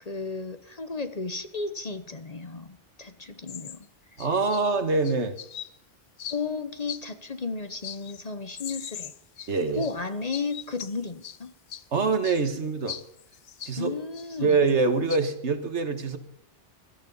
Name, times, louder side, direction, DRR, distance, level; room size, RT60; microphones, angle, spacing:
voice 1, 0.0-3.9 6.3-9.1 9.7-11.5 13.8-14.6, left 4 dB, 35° left, 10 dB, 1.0 m, -34 dB
sound 1, 3.5-3.8 4.2-4.6 5.0-5.7 6.2-6.4 6.9-7.3 7.8-8.2 8.5-10.0 10.3-11.4 11.7-11.8 12.2-12.4 12.9-13.7 14.1-14.7 15.1-15.2, left 9 dB, 60° left, 1.0 m, -40 dB
voice 2, 4.2-5.3 9.5-9.9 11.9-13.0 13.7-13.9 14.4-16.2, right 4 dB, 75° right, 9 dB, 1.8 m, -24 dB
17.0 x 13.0 x 5.5 m, 0.72 s
omnidirectional pair, 1.2 m